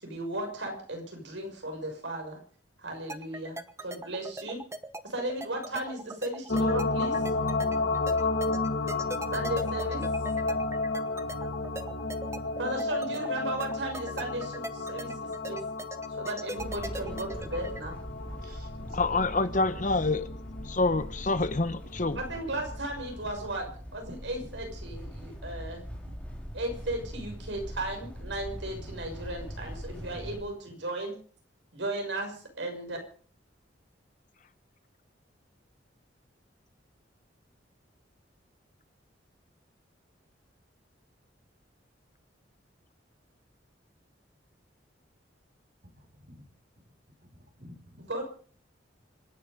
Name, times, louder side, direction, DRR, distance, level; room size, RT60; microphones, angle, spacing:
voice 1, 0.0-2.4 2.8-4.6 5.0-7.2 9.3-10.1 12.6-15.6 16.2-18.0 22.2-25.8 26.5-31.2 31.7-33.0 48.1-48.2, right 1 dB, 75° right, 3 dB, 6.5 m, -35 dB
sound 1, 3.1-17.8, right 2 dB, 15° right, 1.1 m, -40 dB
sound 2, 6.5-22.2 22.6-22.7, left 3 dB, 65° left, 1.7 m, -32 dB
sound 3, 16.6-30.4, equal, 5° left, 4.3 m, -41 dB
voice 2, 18.2-19.0 26.0-26.1 30.1-30.3 45.9-46.4 47.6-48.0, equal, 55° right, 4 dB, 4.9 m, -51 dB
voice 3, 18.9-20.3 20.6-22.2, left 3 dB, 45° left, 13 dB, 1.1 m, -27 dB
26.0 x 10.5 x 5.2 m, 0.43 s
head